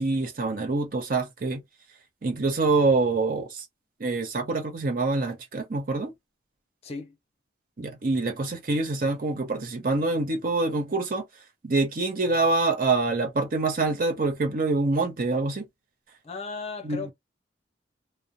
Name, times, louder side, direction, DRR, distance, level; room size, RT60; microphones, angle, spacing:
voice 1, 0.0-1.6 2.2-3.6 4.0-6.1 7.8-11.2 11.6-15.6 16.8-17.1, right 3 dB, 50° right, 0.6 m, -25 dB
voice 2, 6.8-7.2 16.2-17.1, left 4 dB, 35° left, 0.6 m, -36 dB
2.4 x 2.0 x 2.8 m
head